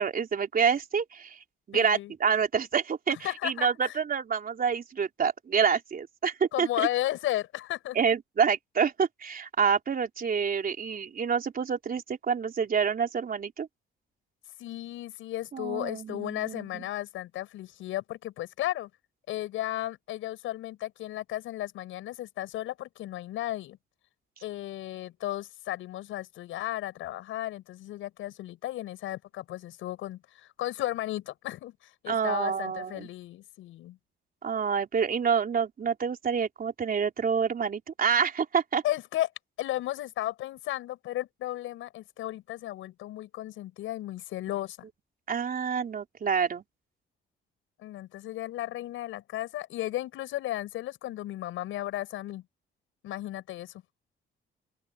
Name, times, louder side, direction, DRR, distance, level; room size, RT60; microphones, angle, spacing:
voice 1, 0.0-1.4 1.7-6.9 8.0-13.7 15.5-16.8 32.1-33.1 34.4-38.8 45.3-46.6, right 6 dB, 45° right, 3.6 m, -27 dB
voice 2, 1.7-2.1 3.1-3.9 6.5-8.0 14.6-18.9 19.3-23.8 24.4-34.0 38.8-39.3 39.6-44.8 47.8-52.4 53.0-53.8, left 14 dB, 90° left, 7.7 m, -34 dB
open air
cardioid pair, 90°, 20 cm